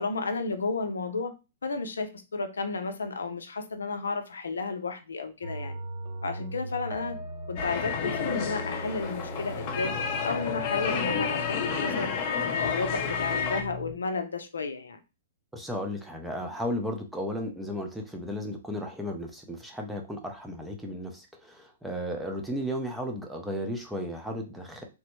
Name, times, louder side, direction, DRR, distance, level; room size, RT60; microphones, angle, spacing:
voice 1, 0.0-1.3 1.6-5.8 6.2-7.2 7.5-12.2 12.4-15.0, left 3 dB, 85° left, 0.5 m, -33 dB
sound 1, 5.4-13.9, right 1 dB, 35° right, 0.8 m, -39 dB
sound 2, 7.6-13.6, left 6 dB, 40° left, 0.6 m, -30 dB
voice 2, 15.5-24.8, equal, 5° right, 0.5 m, -34 dB
3.3 x 2.1 x 2.9 m
hypercardioid pair, 125°, 0 cm